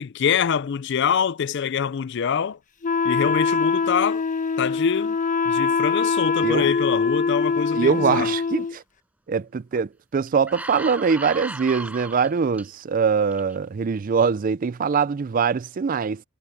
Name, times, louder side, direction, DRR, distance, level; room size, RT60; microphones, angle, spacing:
voice 1, 0.0-2.6 3.0-4.2 4.6-5.2 5.5-8.3, left 7 dB, 60° left, 0.4 m, -24 dB
Wind instrument woodwind instrument, 2.8-8.8, left 5 dB, 40° left, 1.2 m, -23 dB
voice 2, 7.8-8.8 9.3-16.2, right 6 dB, 40° right, 0.4 m, -23 dB
sound 1, 9.7-9.8 10.3-12.6 13.3-13.5, right 1 dB, 5° right, 5.5 m, -36 dB
head